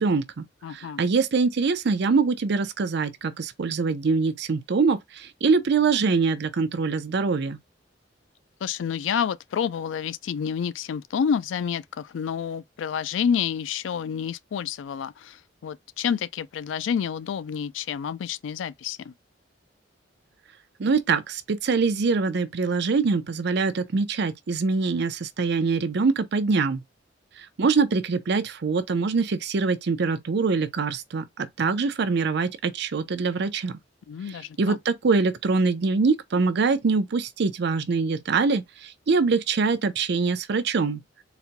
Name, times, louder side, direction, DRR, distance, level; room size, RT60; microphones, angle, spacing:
voice 1, 0.0-7.6 20.8-26.8 27.4-33.8 34.3-41.0, right 4 dB, 65° right, 0.5 m, -24 dB
voice 2, 0.6-1.1 8.6-19.1 34.1-34.8, left 7 dB, 85° left, 0.3 m, -29 dB
4.0 x 2.1 x 2.8 m
head